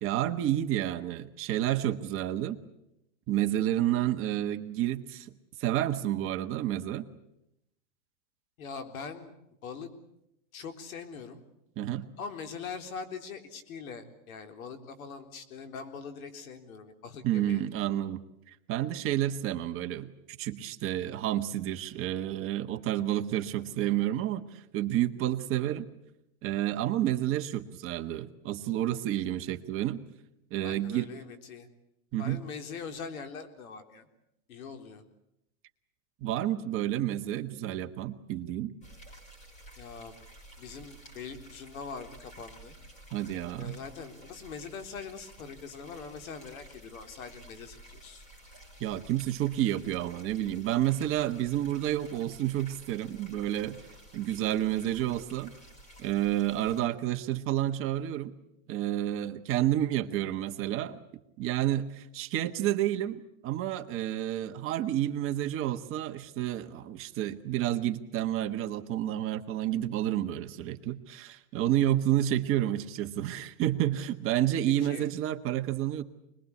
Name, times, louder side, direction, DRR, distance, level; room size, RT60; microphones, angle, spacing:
voice 1, 0.0-2.6 3.3-5.3 5.6-7.1 11.8-12.1 17.2-25.9 26.4-30.0 30.5-31.1 32.1-32.4 36.2-38.7 43.1-43.8 48.8-53.8 54.1-55.5 56.0-58.3 58.7-61.0 61.4-76.0, right 12 dB, 30° right, 7 dB, 1.3 m, -30 dB
voice 2, 8.6-9.3 9.6-9.9 10.5-11.4 12.2-17.6 30.6-31.7 32.2-34.1 34.5-35.0 39.8-40.1 40.6-42.8 43.6-48.2 74.8-75.1, left 5 dB, 75° left, 7 dB, 3.8 m, -42 dB
sound 1, 38.8-56.8, right 1 dB, 15° left, 5.4 m, -52 dB
25.5 x 21.0 x 8.4 m, 0.83 s
supercardioid pair, 140°, 42 cm